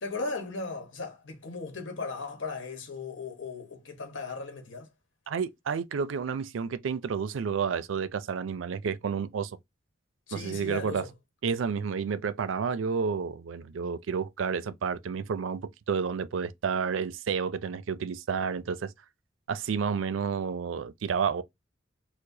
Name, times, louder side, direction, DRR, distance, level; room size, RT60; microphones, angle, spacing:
voice 1, 0.0-4.9 10.3-11.1, left 4 dB, 75° left, 1.0 m, -37 dB
voice 2, 5.3-9.6 10.3-11.1 11.4-15.6 15.9-18.9 19.5-21.4, right 6 dB, 90° right, 0.4 m, -30 dB
4.6 x 2.0 x 2.6 m
head